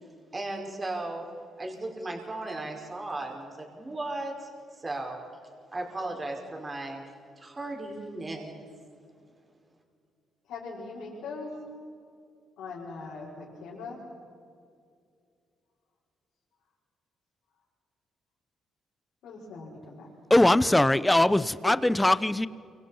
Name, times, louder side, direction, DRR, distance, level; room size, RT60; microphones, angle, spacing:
voice 1, 0.3-1.3 1.6-5.2 5.7-7.0 7.4-8.7, right 2 dB, 25° right, 1 dB, 5.0 m, -36 dB
voice 2, 10.5-11.6 12.6-14.0 19.2-20.1, left 4 dB, 85° left, -6 dB, 5.7 m, -40 dB
voice 3, 20.3-22.5, left 1 dB, 10° left, 16 dB, 0.8 m, -21 dB
29.0 x 25.5 x 5.7 m, 2.4 s
cardioid pair, 90°, 0 cm